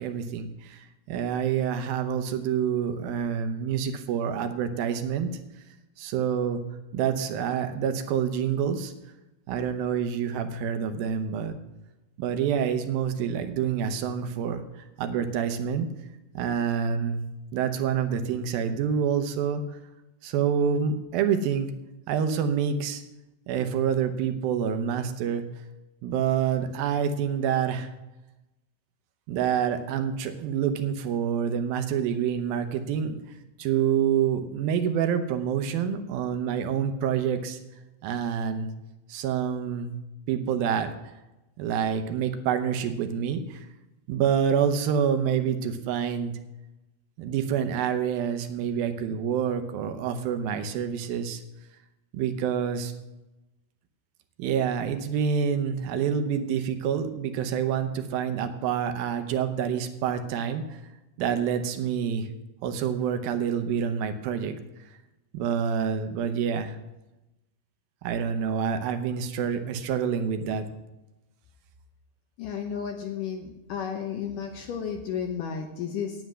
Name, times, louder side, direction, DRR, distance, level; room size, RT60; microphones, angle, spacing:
voice 1, 0.0-5.3 6.0-6.6 6.9-8.9 9.5-11.6 12.2-15.9 16.3-17.2 17.5-19.6 20.2-21.7 22.1-23.0 23.5-25.4 26.0-27.9 29.3-33.2 33.6-37.6 38.0-38.7 39.1-39.9 40.3-40.9 41.6-43.7 44.1-46.3 47.2-51.4 52.1-52.9 54.4-60.8 61.2-62.3 62.6-64.5 65.3-66.8 68.0-70.7, right 8 dB, 75° right, 8 dB, 2.5 m, -27 dB
voice 2, 72.4-76.2, left 7 dB, 75° left, 3 dB, 2.1 m, -33 dB
9.6 x 9.2 x 6.1 m, 0.98 s
omnidirectional pair, 4.5 m